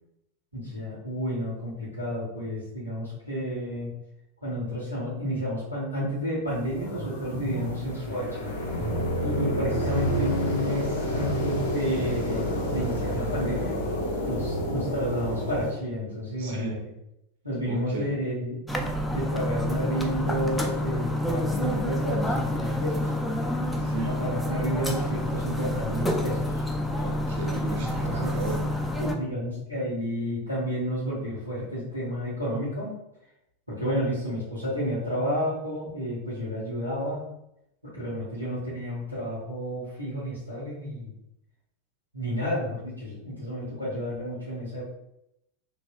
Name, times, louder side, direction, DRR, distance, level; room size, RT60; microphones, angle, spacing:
voice 1, 0.5-3.9 4.4-8.5 9.2-13.7 14.2-16.8 17.4-18.6 19.1-23.1 24.0-26.7 27.8-28.4 29.0-32.9 33.7-37.3 37.8-41.1 42.1-44.8, equal, 90° left, -10 dB, 1.2 m, -31 dB
sound 1, 6.5-15.7, equal, 55° left, 1.0 m, -29 dB
voice 2, 16.4-16.7 17.7-18.1 23.8-24.1 26.9-28.7, right 3 dB, 50° right, 1 dB, 0.5 m, -35 dB
sound 2, 18.7-29.1, left 1 dB, 5° left, 0.3 m, -28 dB
2.9 x 2.6 x 2.4 m, 0.82 s
figure-of-eight pair, 90°, 0 cm